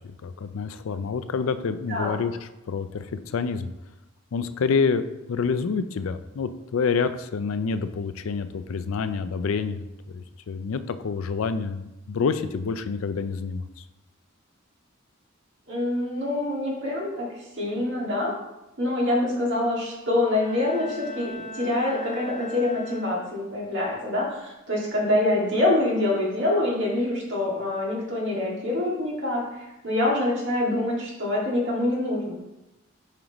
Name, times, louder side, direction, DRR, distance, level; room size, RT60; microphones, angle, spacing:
voice 1, 0.0-3.7 4.3-13.8, left 5 dB, 75° left, 11 dB, 0.4 m, -28 dB
voice 2, 1.9-2.2 15.7-18.3 18.8-32.3, left 1 dB, 60° right, -4 dB, 2.1 m, -25 dB
Bowed string instrument, 20.2-23.6, equal, 30° left, 1.1 m, -40 dB
7.3 x 5.1 x 3.0 m, 0.95 s
head